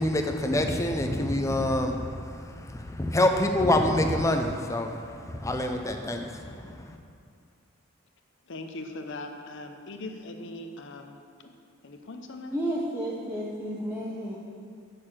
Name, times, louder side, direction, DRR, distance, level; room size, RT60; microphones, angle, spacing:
voice 1, 0.0-7.0, left 1 dB, 15° left, 4 dB, 0.6 m, -26 dB
voice 2, 8.5-11.2 11.4-11.5 11.8-12.6, left 2 dB, 60° left, 5 dB, 0.8 m, -40 dB
voice 3, 12.5-14.4, equal, 10° right, -6 dB, 0.8 m, -31 dB
6.6 x 6.5 x 7.4 m, 2.3 s
head